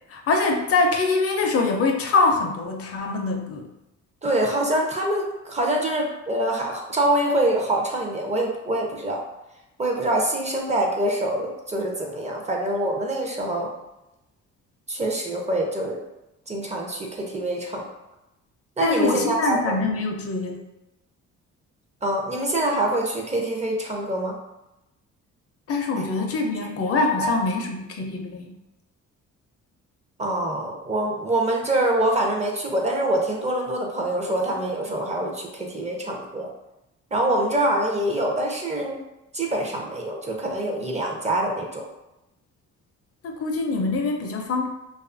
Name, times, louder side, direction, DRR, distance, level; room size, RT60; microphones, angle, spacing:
voice 1, 0.1-3.7 18.8-20.6 25.7-28.5 43.2-44.7, left 3 dB, 50° left, 3 dB, 0.4 m, -24 dB
voice 2, 4.2-9.2 9.8-13.7 14.9-16.0 16.5-17.9 18.8-19.8 20.5-20.7 22.0-24.4 26.0-26.1 26.6-27.3 30.2-36.5 37.1-39.0 39.3-41.8, right 1 dB, 25° right, 0 dB, 0.5 m, -25 dB
2.6 x 2.3 x 2.4 m, 0.91 s
cardioid pair, 90°, 30 cm